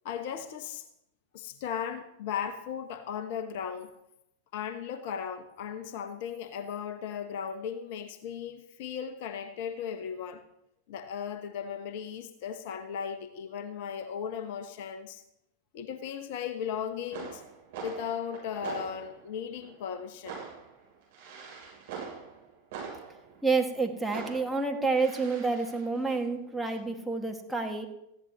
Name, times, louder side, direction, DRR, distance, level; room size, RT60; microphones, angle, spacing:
voice 1, 0.0-0.8 1.3-3.9 4.5-10.4 10.9-15.2 15.7-17.4 17.8-20.4, left 8 dB, 50° left, 1.0 m, -36 dB
sound 1, 16.7-16.8 17.0-23.8 24.1-26.8, right 6 dB, 55° right, 6.6 m, -44 dB
voice 2, 23.4-27.9, right 3 dB, 5° right, 2.0 m, -29 dB
19.0 x 15.0 x 3.0 m
figure-of-eight pair, 90°, 0 cm